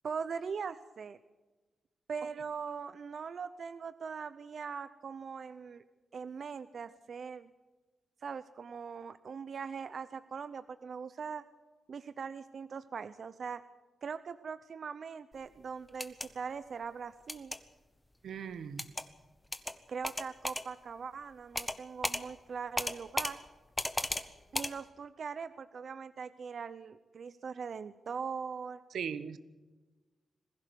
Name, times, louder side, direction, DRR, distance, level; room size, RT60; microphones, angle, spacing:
voice 1, 0.0-1.2 2.1-5.8 6.1-7.5 8.2-11.4 11.9-13.6 14.0-17.5 19.9-23.4 24.5-28.8, right 6 dB, 50° right, 13 dB, 0.7 m, -41 dB
sound 1, 15.9-16.3 17.3-17.6 18.8-19.1 19.5-19.7 20.0-20.6 21.6-21.8 22.0-22.2 22.8-23.3 23.8-24.2 24.5-24.7, left 1 dB, 10° left, 1.0 m, -34 dB
voice 2, 18.2-18.9 28.9-29.4, right 7 dB, 80° right, 13 dB, 1.2 m, -38 dB
21.0 x 16.0 x 8.0 m, 1.2 s
wide cardioid pair, 160°, 0 cm